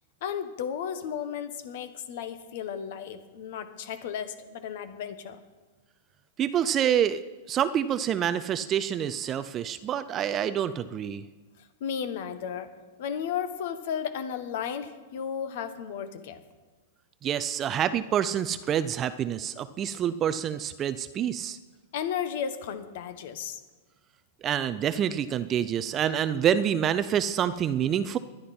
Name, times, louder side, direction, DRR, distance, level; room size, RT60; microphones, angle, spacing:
voice 1, 0.2-5.4 11.6-12.7 13.0-16.4 21.9-23.6, left 8 dB, 50° left, 10 dB, 1.3 m, -34 dB
voice 2, 6.4-11.2 17.2-21.6 24.4-28.2, right 9 dB, 20° right, 13 dB, 0.4 m, -27 dB
20.0 x 11.5 x 4.4 m, 1.3 s
supercardioid pair, 170°, 0 cm